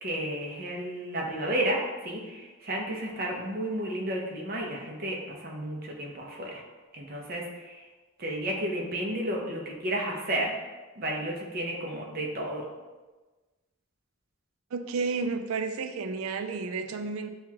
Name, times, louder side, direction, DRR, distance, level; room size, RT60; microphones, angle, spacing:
voice 1, 0.0-6.6 6.9-7.8 8.2-10.5 11.0-12.6, right 1 dB, 45° right, -1 dB, 0.7 m, -32 dB
voice 2, 14.7-17.3, right 4 dB, 85° right, 8 dB, 0.4 m, -31 dB
6.5 x 2.4 x 2.8 m, 1.3 s
head